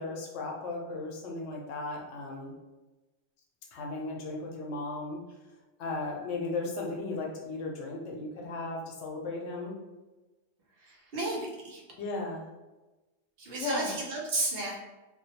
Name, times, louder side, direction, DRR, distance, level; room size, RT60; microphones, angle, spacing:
voice 1, 0.0-2.5 3.7-5.2 5.8-9.8 12.0-12.5 13.6-13.9, left 3 dB, 85° left, 0 dB, 0.9 m, -36 dB
voice 2, 10.8-11.8 13.4-14.8, right 2 dB, 65° right, -2 dB, 0.8 m, -33 dB
2.2 x 2.1 x 2.7 m, 1.1 s
omnidirectional pair, 1.1 m